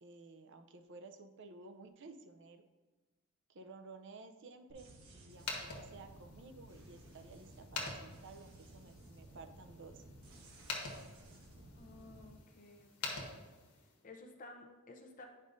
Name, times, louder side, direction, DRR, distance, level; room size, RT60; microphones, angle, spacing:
voice 1, 0.0-2.6 3.5-10.0, right 3 dB, 55° right, 8 dB, 0.5 m, -54 dB
sound 1, 4.7-12.3, right 1 dB, 70° right, 1.2 m, -57 dB
sound 2, 5.3-14.0, left 3 dB, 85° left, 1.3 m, -47 dB
voice 2, 11.8-13.3 14.0-15.3, left 2 dB, 35° left, 3 dB, 0.6 m, -54 dB
9.6 x 5.4 x 2.6 m, 1.2 s
head